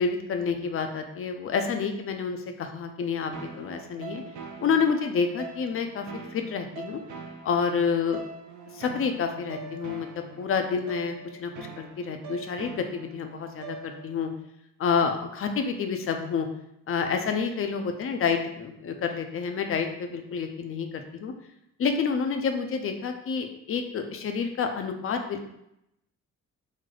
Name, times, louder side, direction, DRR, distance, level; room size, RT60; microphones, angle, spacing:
voice 1, 0.0-4.2 4.6-7.0 7.4-8.2 8.8-14.3 14.8-16.5 16.9-21.3 21.8-25.5, left 5 dB, 45° left, 6 dB, 0.5 m, -29 dB
sound 1, 3.3-14.3, right 5 dB, 75° right, 0.5 m, -43 dB
3.2 x 2.0 x 3.8 m, 0.81 s
cardioid pair, 90°, 30 cm